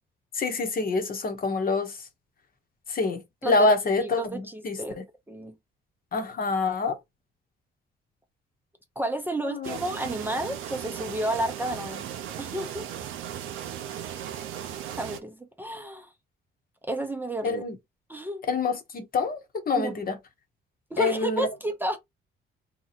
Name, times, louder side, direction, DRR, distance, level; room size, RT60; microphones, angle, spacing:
voice 1, 0.3-2.0 2.9-5.0 6.1-7.0 9.4-9.8 17.4-17.8 18.5-20.1 21.0-21.5, left 3 dB, 50° left, 1.0 m, -26 dB
voice 2, 3.4-5.0 5.3-5.5 9.0-12.1 12.4-12.9 14.9-16.1 16.9-17.6 18.1-18.4 19.7-19.9 20.9-22.0, right 1 dB, 10° right, 0.6 m, -31 dB
sound 1, 9.6-15.2, right 10 dB, 90° right, 0.5 m, -37 dB
2.9 x 2.2 x 4.1 m
cardioid pair, 90°, 20 cm